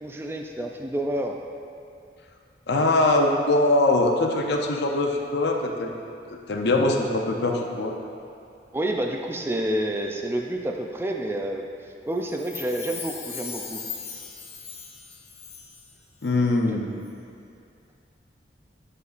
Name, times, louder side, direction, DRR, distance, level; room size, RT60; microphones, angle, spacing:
voice 1, 0.0-1.4 6.8-6.9 8.7-11.7 12.1-13.8 16.7-16.8, right 1 dB, 15° right, 2 dB, 0.4 m, -29 dB
voice 2, 2.7-5.9 6.5-7.9 16.2-16.9, left 2 dB, 75° left, 2 dB, 0.7 m, -22 dB
Chime, 12.3-15.9 16.2-16.3, left 6 dB, 35° left, 0.6 m, -38 dB
11.0 x 4.9 x 2.5 m, 2.5 s
head